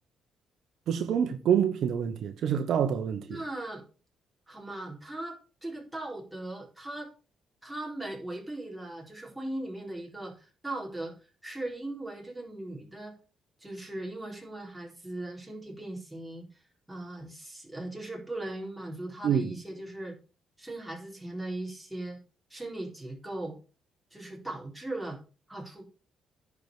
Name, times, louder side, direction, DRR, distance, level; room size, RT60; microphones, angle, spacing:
voice 1, 0.9-3.4 19.2-19.5, right 8 dB, 70° right, 1.1 m, -27 dB
voice 2, 3.3-3.8 4.5-7.1 7.6-11.2 11.4-13.2 13.6-16.5 16.9-20.1 20.6-22.2 22.5-23.6 24.1-25.2 25.5-25.8, right 1 dB, 5° right, 4.2 m, -38 dB
10.5 x 4.9 x 6.8 m
cardioid pair, 90°, 0 cm